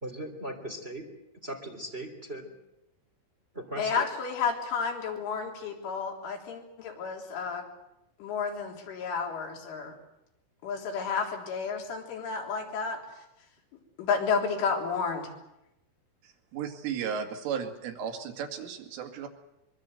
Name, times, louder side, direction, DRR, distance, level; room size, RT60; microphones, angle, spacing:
voice 1, 0.0-1.0 1.4-2.5 3.5-4.1, right 1 dB, 15° right, 3 dB, 2.4 m, -38 dB
voice 2, 3.8-7.6 8.2-9.9 10.6-13.0 14.0-15.3, left 5 dB, 75° left, 1 dB, 6.1 m, -31 dB
voice 3, 16.5-19.3, right 7 dB, 80° right, 4 dB, 4.8 m, -34 dB
23.5 x 23.5 x 8.0 m, 0.88 s
omnidirectional pair, 5.6 m